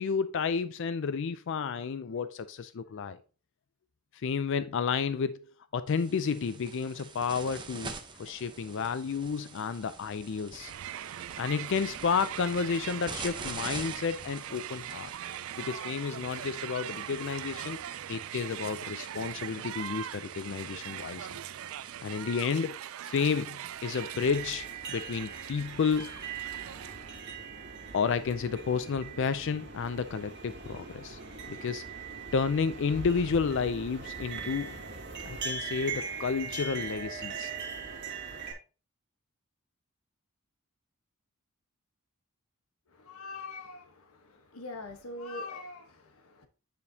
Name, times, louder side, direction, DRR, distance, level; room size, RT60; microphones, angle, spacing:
voice 1, 0.0-3.2 4.2-7.9 8.2-10.7 11.4-15.1 15.6-17.8 18.1-21.3 22.0-26.1 27.9-31.2 31.5-31.8 32.3-34.8 35.3-37.5, left 5 dB, 55° left, 0.4 m, -31 dB
sound 1, 5.9-22.4, right 4 dB, 20° right, 0.8 m, -46 dB
Crowd, 10.5-27.2, right 11 dB, 65° right, 0.3 m, -41 dB
sound 2, 23.9-38.5, right 5 dB, 50° right, 1.8 m, -40 dB
voice 2, 42.9-46.5, left 2 dB, 75° left, 1.2 m, -43 dB
9.4 x 5.1 x 2.8 m
head